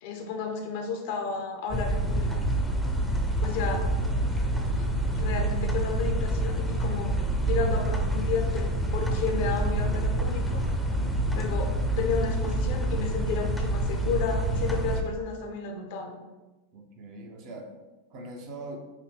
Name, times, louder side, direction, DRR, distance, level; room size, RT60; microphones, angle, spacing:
voice 1, 0.0-2.3 3.4-3.9 5.1-7.2 7.4-10.7 11.3-16.2, left 5 dB, 60° left, 4 dB, 0.7 m, -32 dB
sound 1, 1.7-15.0, right 1 dB, ahead, 0.6 m, -27 dB
voice 2, 10.9-11.4 16.7-17.7 18.1-18.8, right 2 dB, 50° right, 2 dB, 0.8 m, -42 dB
5.5 x 2.1 x 3.5 m, 1.1 s
hypercardioid pair, 100°, 0 cm